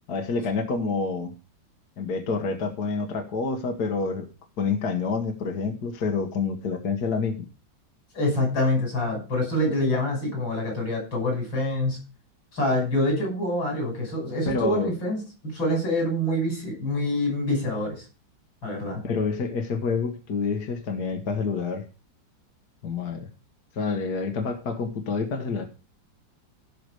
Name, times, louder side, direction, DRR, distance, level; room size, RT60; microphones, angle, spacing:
voice 1, 0.1-1.3 2.0-4.3 4.6-7.4 14.5-14.9 19.0-21.9 22.8-23.3 23.7-25.7, left 4 dB, 55° left, 4 dB, 1.9 m, -28 dB
voice 2, 8.1-12.0 12.5-18.0 18.6-19.0, left 1 dB, 85° left, 1 dB, 6.5 m, -26 dB
16.0 x 6.1 x 4.8 m, 0.33 s
omnidirectional pair, 2.1 m